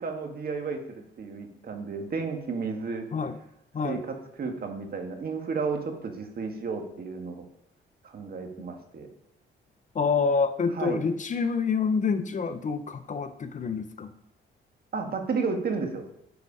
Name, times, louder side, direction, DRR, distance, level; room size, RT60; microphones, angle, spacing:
voice 1, 0.0-3.1 3.8-7.4 8.1-9.1 10.8-11.0 14.9-16.1, right 4 dB, 50° right, 4 dB, 1.7 m, -32 dB
voice 2, 9.9-14.1, left 5 dB, 40° left, 10 dB, 0.7 m, -27 dB
9.5 x 4.7 x 5.5 m, 0.82 s
cardioid pair, 90°, 20 cm